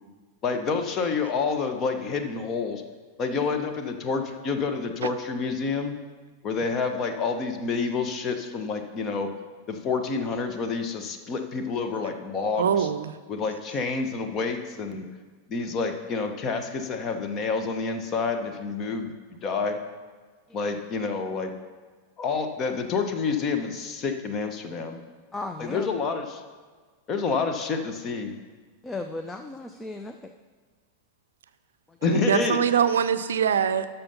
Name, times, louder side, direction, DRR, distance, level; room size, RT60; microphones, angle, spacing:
voice 1, 0.4-2.8 3.2-6.0 6.4-9.3 9.7-12.9 13.3-15.0 15.5-19.1 19.4-19.8 20.5-21.5 22.2-25.0 25.6-26.4 27.1-28.3 32.0-32.6, left 4 dB, 30° left, 6 dB, 1.0 m, -28 dB
voice 2, 12.6-13.1 32.0-33.9, right 8 dB, 65° right, 12 dB, 0.5 m, -23 dB
voice 3, 20.5-20.8 22.3-22.4 25.3-25.9 28.8-30.3 31.9-32.0, left 2 dB, 10° left, 6 dB, 0.5 m, -36 dB
12.5 x 5.7 x 5.5 m, 1.4 s
figure-of-eight pair, 90°, 0 cm